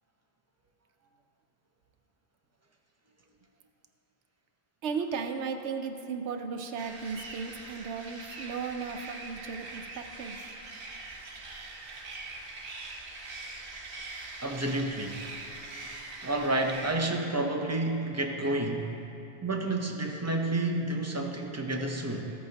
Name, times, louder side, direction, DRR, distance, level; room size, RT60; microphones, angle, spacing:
voice 1, 4.8-10.5, right 5 dB, 90° right, 6 dB, 0.9 m, -35 dB
sound 1, 6.8-16.9, right 3 dB, 60° right, 1.1 m, -43 dB
voice 2, 14.4-15.2 16.2-19.0 19.4-22.3, right 2 dB, 20° right, 1 dB, 0.6 m, -30 dB
14.0 x 8.4 x 2.9 m, 2.9 s
omnidirectional pair, 1.1 m